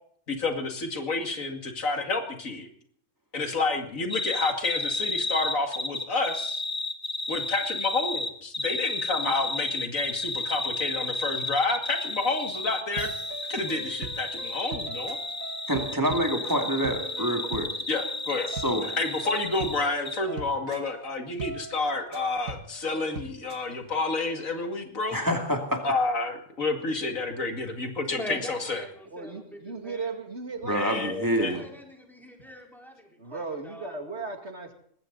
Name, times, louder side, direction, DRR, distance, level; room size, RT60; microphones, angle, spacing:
voice 1, 0.3-2.7 3.3-6.6 7.3-13.1 13.5-15.2 17.9-18.5 19.0-25.2 25.8-28.8 30.7-31.6, left 3 dB, 85° left, 5 dB, 2.7 m, -29 dB
sound 1, 4.1-19.8 20.0-20.2, left 2 dB, 20° left, 1.2 m, -32 dB
sound 2, 13.0-23.7, right 3 dB, 85° right, 1.9 m, -40 dB
voice 2, 15.7-17.7 18.5-18.9 25.1-25.8 30.7-31.7, equal, 15° right, 3 dB, 2.4 m, -27 dB
voice 3, 28.1-30.1 31.5-34.0, equal, ahead, 1 dB, 4.2 m, -42 dB
voice 4, 29.1-31.0 33.2-34.7, right 4 dB, 55° right, 5 dB, 2.5 m, -36 dB
20.0 x 16.5 x 4.0 m, 0.62 s
omnidirectional pair, 1.4 m